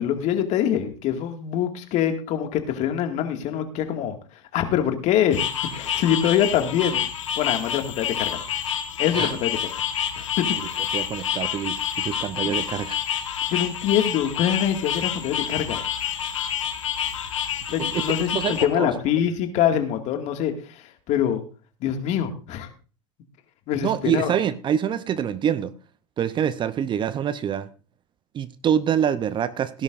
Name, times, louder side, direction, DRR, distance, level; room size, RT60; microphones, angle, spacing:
voice 1, 0.0-4.2 4.5-5.5 5.7-7.1 7.4-8.4 9.0-9.6 10.2-10.8 13.5-15.8 17.7-21.4 21.8-22.7 23.7-24.3, left 9 dB, 45° left, 6 dB, 2.0 m, -24 dB
sound 1, 5.3-18.6, left 9 dB, 80° left, 1.5 m, -28 dB
voice 2, 10.9-13.0 17.9-18.0 18.3-18.9 23.8-25.7 26.2-27.7 28.3-29.8, right 9 dB, 30° right, 15 dB, 0.7 m, -25 dB
17.5 x 11.0 x 2.6 m, 0.37 s
hypercardioid pair, 95°, 16 cm